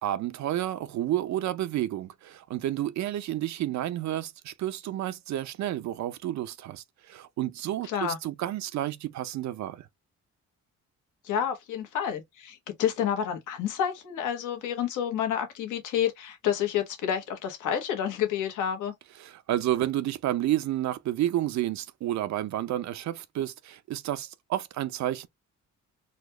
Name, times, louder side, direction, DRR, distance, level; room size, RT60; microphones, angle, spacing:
voice 1, 0.0-9.9 19.2-25.3, right 13 dB, 65° right, 0.5 m, -30 dB
voice 2, 7.8-8.2 11.2-18.9, left 9 dB, 85° left, 1.2 m, -29 dB
4.1 x 2.3 x 2.9 m
cardioid pair, 90°, 30 cm